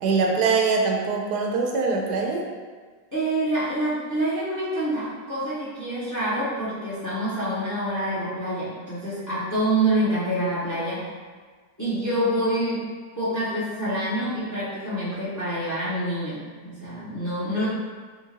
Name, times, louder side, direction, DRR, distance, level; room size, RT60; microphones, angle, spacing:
voice 1, 0.0-2.4, right 4 dB, 80° right, 0 dB, 1.1 m, -23 dB
voice 2, 3.1-11.1 11.8-12.9 13.1-17.7, right 1 dB, 20° left, -11 dB, 0.5 m, -26 dB
2.9 x 2.4 x 4.0 m, 1.5 s
omnidirectional pair, 1.7 m